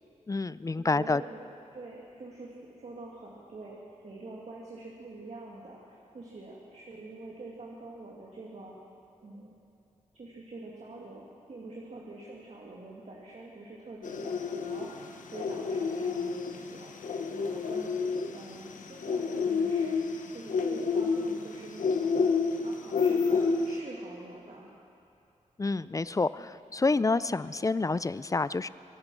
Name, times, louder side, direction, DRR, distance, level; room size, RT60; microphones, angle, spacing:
voice 1, 0.3-1.2 25.6-28.7, left 3 dB, 25° left, 16 dB, 0.4 m, -28 dB
voice 2, 0.9-3.8 4.0-8.8 9.2-9.5 10.1-17.9 18.3-22.1 22.6-24.7, right 2 dB, 60° right, -3 dB, 2.1 m, -46 dB
sound 1, 14.0-23.8, left 5 dB, 85° left, 1.0 m, -29 dB
24.5 x 9.7 x 6.2 m, 2.5 s
cardioid pair, 70°, 13 cm